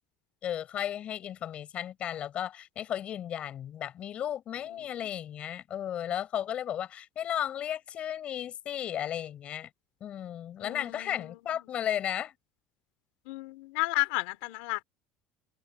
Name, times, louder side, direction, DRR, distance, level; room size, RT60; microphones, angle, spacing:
voice 1, 0.4-9.7 10.0-12.3, left 10 dB, 35° left, 6.8 m, -34 dB
voice 2, 10.6-11.4 13.3-14.8, left 24 dB, 85° left, 2.8 m, -33 dB
cardioid pair, 165°, 3 cm